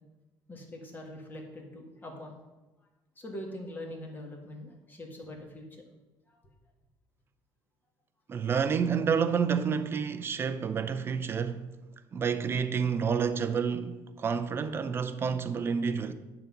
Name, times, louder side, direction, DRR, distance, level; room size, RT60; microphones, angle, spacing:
voice 1, 0.5-2.3 3.1-5.8 6.3-6.4, left 1 dB, 20° left, 1.6 m, -43 dB
voice 2, 8.3-11.7 12.1-16.1, right 6 dB, 25° right, 0.5 m, -29 dB
9.7 x 4.0 x 7.1 m
cardioid pair, 160°, 10 cm